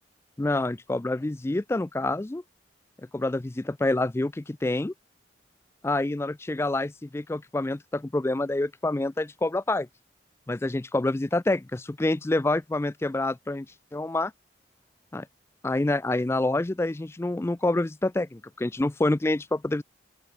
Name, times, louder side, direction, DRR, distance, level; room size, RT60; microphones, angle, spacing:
voice 1, 0.4-2.4 3.1-4.9 5.8-9.9 10.5-13.7 13.9-14.3 15.1-15.2 15.6-19.8, left 2 dB, 15° left, 0.3 m, -27 dB
open air
head